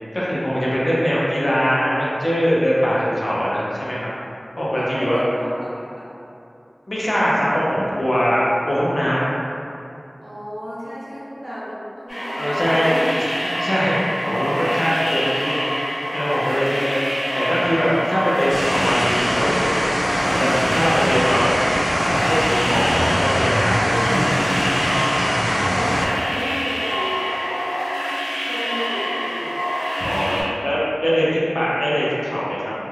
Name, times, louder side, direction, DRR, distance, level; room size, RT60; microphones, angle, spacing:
voice 1, 0.1-4.1 4.6-5.2 6.9-9.3 12.4-15.7 16.1-17.0 17.3-19.7 20.2-21.5 22.0-24.4 30.0-32.7, equal, 60° left, -8 dB, 0.7 m, -22 dB
voice 2, 4.8-6.0 10.2-13.3 25.4-27.9 28.5-29.6, equal, 75° right, -10 dB, 1.0 m, -31 dB
sound 1, 12.1-30.4, equal, 85° left, 1.0 m, -26 dB
sound 2, 18.5-26.0, equal, 30° left, 0.8 m, -22 dB
2.6 x 2.3 x 3.2 m, 2.7 s
wide cardioid pair, 45°, 0 cm